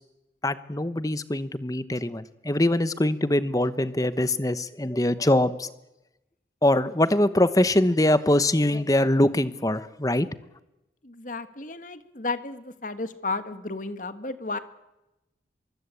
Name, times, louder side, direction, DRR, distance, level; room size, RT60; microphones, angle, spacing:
voice 1, 0.4-5.7 6.6-10.3, left 1 dB, 20° left, 14 dB, 1.0 m, -23 dB
voice 2, 11.0-14.6, left 3 dB, 45° left, 11 dB, 1.7 m, -33 dB
24.0 x 23.0 x 8.4 m, 0.95 s
head